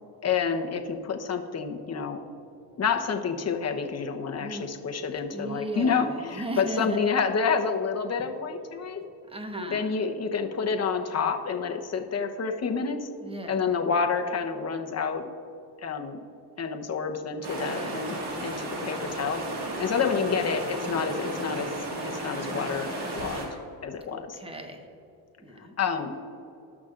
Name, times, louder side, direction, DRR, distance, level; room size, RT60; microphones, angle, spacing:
voice 1, 0.2-2.2 2.8-9.0 9.7-13.1 13.5-15.3 15.8-16.2 16.6-21.7 22.0-22.9 23.2-23.5 23.8-24.4 25.8-26.1, left 5 dB, 35° left, 4 dB, 1.1 m, -28 dB
voice 2, 4.4-4.7 5.3-7.0 9.3-9.9 13.2-13.6 17.6-18.1 24.1-24.8 25.4-26.2, right 1 dB, 10° right, 5 dB, 1.2 m, -37 dB
sound 1, 17.4-23.5, right 1 dB, 60° right, 2.3 m, -34 dB
18.0 x 6.2 x 2.6 m, 2.7 s
supercardioid pair, 80°, 45 cm